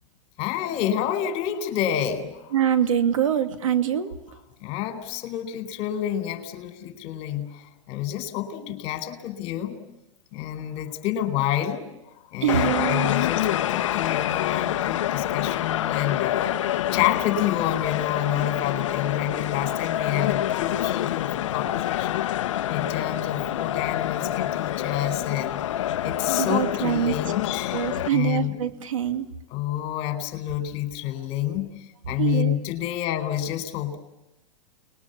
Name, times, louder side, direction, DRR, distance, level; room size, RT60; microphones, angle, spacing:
voice 1, 0.4-2.5 4.6-9.8 10.3-11.9 12.3-16.6 16.9-22.3 22.7-25.6 26.0-28.6 29.5-31.7 32.1-34.0, left 11 dB, 45° left, 7 dB, 4.4 m, -28 dB
voice 2, 2.5-4.1 12.4-13.1 26.3-27.1 27.7-29.3 32.2-32.6, right 9 dB, 80° right, 7 dB, 2.5 m, -24 dB
sound 1, 12.5-28.1, left 12 dB, 70° left, 0.8 m, -27 dB
30.0 x 21.5 x 7.1 m, 0.94 s
hypercardioid pair, 130°, 17 cm